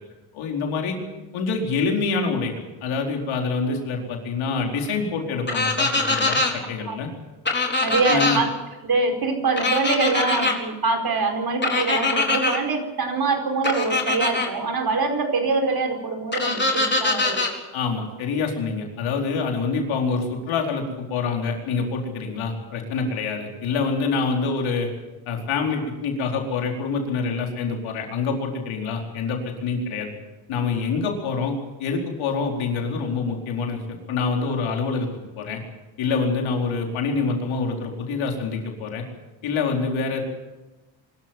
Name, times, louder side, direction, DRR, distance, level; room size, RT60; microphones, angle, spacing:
voice 1, 0.3-0.9 1.3-2.5 2.8-7.1 8.1-8.4 17.7-24.9 25.3-30.1 30.5-35.1 35.4-35.6 36.0-39.0 39.4-40.2, left 4 dB, 80° left, 1 dB, 4.6 m, -26 dB
sound 1, 5.5-6.5 7.5-8.4 9.6-10.5 11.6-12.6 13.6-14.5 16.3-17.5, left 3 dB, 20° left, 4.3 m, -23 dB
voice 2, 7.8-8.5 8.8-17.5, right 4 dB, 50° right, 5 dB, 5.0 m, -24 dB
24.0 x 13.5 x 9.1 m, 1.1 s
cardioid pair, 80°, 47 cm